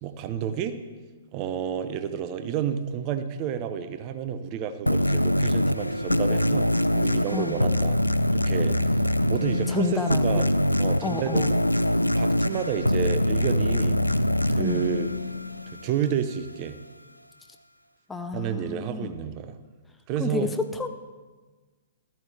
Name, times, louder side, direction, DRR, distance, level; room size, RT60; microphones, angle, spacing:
voice 1, 0.0-0.8 1.3-8.0 8.3-8.9 9.2-10.5 10.8-11.6 12.2-14.0 14.5-15.1 15.7-16.8 18.3-19.6 20.1-20.5, right 8 dB, 35° right, 10 dB, 0.7 m, -30 dB
sound 1, 4.9-16.0, left 1 dB, 90° left, 0.3 m, -24 dB
voice 2, 7.3-7.6 9.7-10.5 11.0-11.6 14.6-14.9 18.1-19.1 20.2-20.9, left 3 dB, 10° left, 7 dB, 0.7 m, -30 dB
13.0 x 10.5 x 3.3 m, 1.3 s
figure-of-eight pair, 115°, 0 cm